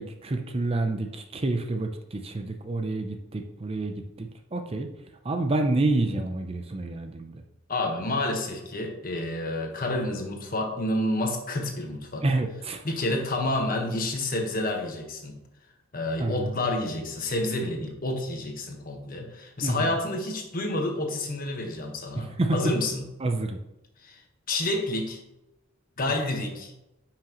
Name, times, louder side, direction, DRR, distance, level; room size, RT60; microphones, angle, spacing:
voice 1, 0.0-4.9 5.2-7.4 12.2-12.8 16.2-16.5 19.6-19.9 22.4-22.6 23.2-23.6, right 2 dB, 30° right, 6 dB, 0.5 m, -28 dB
voice 2, 7.7-12.2 12.8-15.4 15.9-23.1 24.0-24.2 24.5-25.2 26.0-26.7, left 1 dB, 40° left, 3 dB, 1.3 m, -29 dB
9.6 x 6.0 x 3.0 m, 0.93 s
head